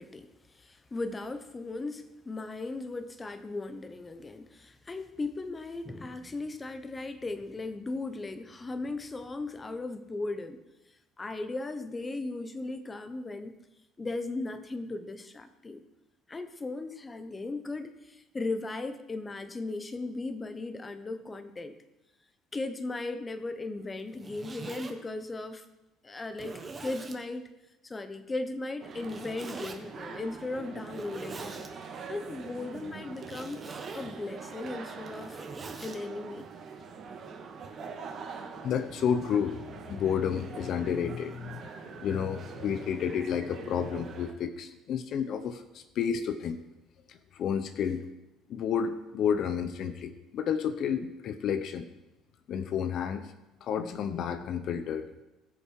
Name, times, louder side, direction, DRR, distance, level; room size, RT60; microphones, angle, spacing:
voice 1, 0.0-10.6 11.2-13.6 14.0-15.8 16.3-21.7 22.5-25.6 26.0-27.4 27.8-31.7 32.1-33.6 33.9-35.4 35.8-36.5, left 2 dB, 20° left, 10 dB, 0.9 m, -37 dB
Zipper (clothing), 24.0-24.9 25.6-25.7 26.3-27.2 29.0-29.8 30.8-31.7 33.2-34.1 34.9-36.0, right 4 dB, 25° right, 1.3 m, -43 dB
sound 1, 28.8-44.3, right 5 dB, 45° right, 1.9 m, -44 dB
voice 2, 38.6-41.6 41.9-46.6 47.1-48.1 48.5-51.9 52.5-53.3 53.6-55.1, left 7 dB, 55° left, 11 dB, 0.7 m, -31 dB
20.0 x 6.8 x 4.7 m, 1.0 s
cardioid pair, 125°, 0 cm